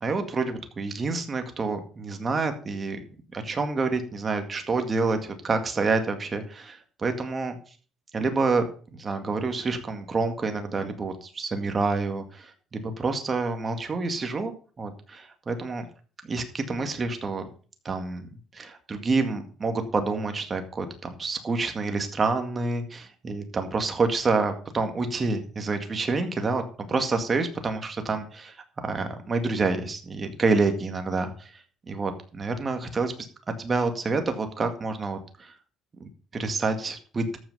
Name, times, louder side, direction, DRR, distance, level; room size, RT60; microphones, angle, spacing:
voice 1, 0.0-3.0 3.3-7.6 8.1-8.6 8.9-15.8 16.3-17.4 17.8-18.3 18.5-26.6 26.9-31.5 31.9-33.1 33.6-35.5 36.0-36.1 36.4-37.4, right 3 dB, 30° right, 6 dB, 2.0 m, -28 dB
13.5 x 6.2 x 5.5 m, 0.40 s
cardioid pair, 110°, 0 cm